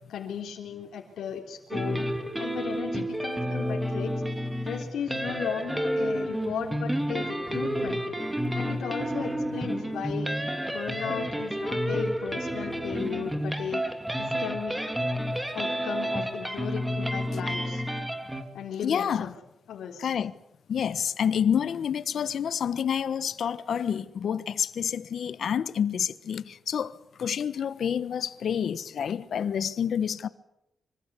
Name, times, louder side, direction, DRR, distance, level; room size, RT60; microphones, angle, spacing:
voice 1, 0.1-2.1 2.4-4.1 4.6-8.0 8.5-10.3 10.7-13.8 14.2-14.8 15.5-17.8 18.5-19.3 19.7-20.1, left 7 dB, 90° left, 3.8 m, -35 dB
sound 1, 1.7-18.4, equal, 5° right, 3.0 m, -30 dB
voice 2, 18.8-19.3 20.0-20.3 20.7-30.3, left 8 dB, 60° left, 1.2 m, -28 dB
26.0 x 25.0 x 8.4 m
wide cardioid pair, 130°, 0 cm